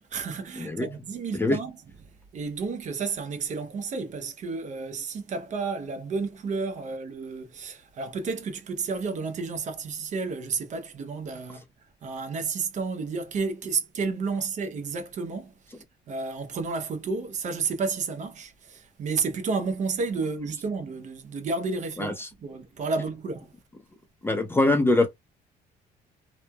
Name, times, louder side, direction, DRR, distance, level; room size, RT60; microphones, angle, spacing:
voice 1, 0.0-1.8 2.3-11.6 12.0-23.5, right 4 dB, 45° right, 0.6 m, -31 dB
voice 2, 0.6-0.9 1.3-1.6 22.0-22.3 24.2-25.1, left 2 dB, 15° left, 0.5 m, -23 dB
3.1 x 2.2 x 2.2 m
cardioid pair, 110°, 17 cm